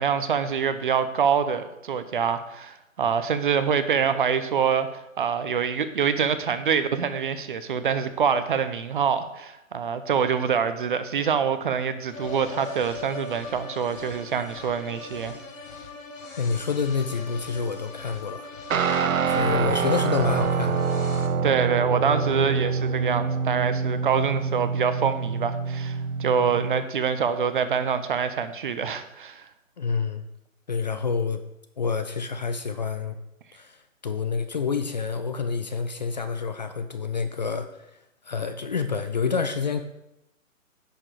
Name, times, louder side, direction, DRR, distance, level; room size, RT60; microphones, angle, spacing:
voice 1, 0.0-15.4 21.4-29.4, right 7 dB, 40° right, 12 dB, 0.7 m, -25 dB
sound 1, 12.1-21.3, left 4 dB, 70° left, 1.6 m, -40 dB
voice 2, 16.4-18.5 19.3-20.9 29.8-30.2 30.7-31.4 31.8-33.2 33.5-37.9 38.2-39.8, left 5 dB, 35° left, 9 dB, 0.5 m, -28 dB
Guitar, 18.7-26.9, right 5 dB, 75° right, 0.8 m, -26 dB
9.8 x 6.2 x 4.8 m, 0.89 s
hypercardioid pair, 145°, 40 cm